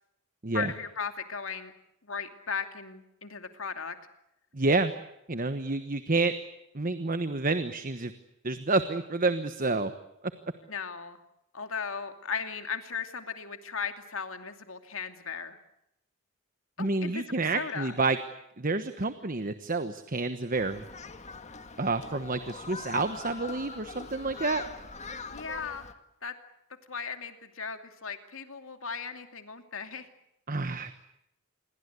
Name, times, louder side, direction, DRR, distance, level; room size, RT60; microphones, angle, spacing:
voice 1, 0.5-1.7 2.0-4.0 10.7-11.2 11.5-15.6 16.8-17.9 25.3-25.9 26.2-26.3 26.9-30.1, left 6 dB, 65° left, 7 dB, 2.6 m, -37 dB
voice 2, 4.5-4.9 5.3-6.3 6.7-8.1 8.4-9.9 16.8-18.2 18.6-20.8 21.8-24.6 30.5-30.9, right 3 dB, 40° right, 10 dB, 1.2 m, -29 dB
Human group actions, 20.5-25.9, left 4 dB, 30° left, 1.8 m, -42 dB
28.0 x 22.5 x 8.2 m, 0.84 s
head